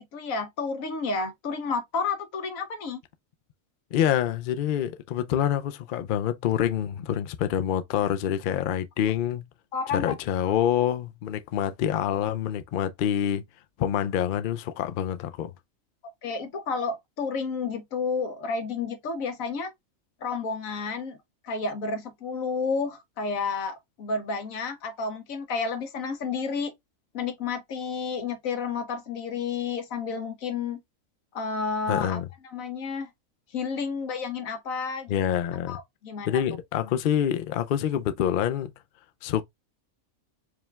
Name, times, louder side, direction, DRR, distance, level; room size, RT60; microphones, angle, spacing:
voice 1, 0.0-3.0 9.7-10.1 16.2-19.7 20.2-21.2 21.4-26.7 27.1-30.8 31.3-32.2 32.5-33.1 33.5-35.1 35.7-36.4, left 4 dB, 90° left, 1.3 m, -31 dB
voice 2, 3.9-9.5 9.9-13.4 13.8-15.5 31.9-32.2 35.1-35.8 36.3-38.7 39.2-39.4, left 10 dB, 65° left, 0.5 m, -26 dB
4.9 x 2.3 x 3.2 m
omnidirectional pair, 1.4 m